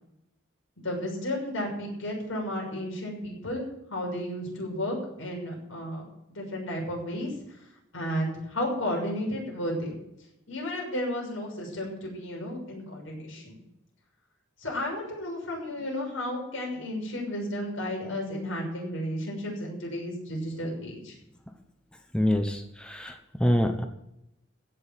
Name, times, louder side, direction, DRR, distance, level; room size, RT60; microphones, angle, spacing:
voice 1, 0.8-6.0 6.3-7.3 7.9-9.9 10.5-13.6 14.6-21.2, left 1 dB, 80° left, -1 dB, 6.3 m, -33 dB
voice 2, 22.1-23.8, equal, 5° left, 4 dB, 1.0 m, -26 dB
16.0 x 6.4 x 7.4 m, 0.85 s
head